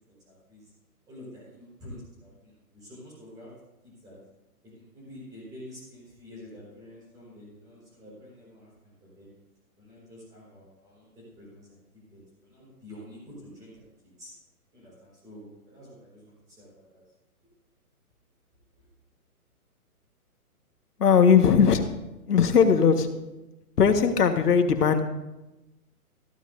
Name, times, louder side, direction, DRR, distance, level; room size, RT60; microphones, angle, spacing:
voice 1, 0.1-0.7 1.1-3.5 3.8-4.2 4.6-8.7 9.0-9.3 9.8-14.3 14.7-17.0 18.8-18.9, left 1 dB, 10° right, -6 dB, 4.7 m, -48 dB
voice 2, 21.0-21.8 22.3-23.1 23.8-25.0, left 6 dB, 90° left, 6 dB, 1.7 m, -19 dB
15.0 x 14.5 x 2.7 m, 0.99 s
hypercardioid pair, 175°, 45 cm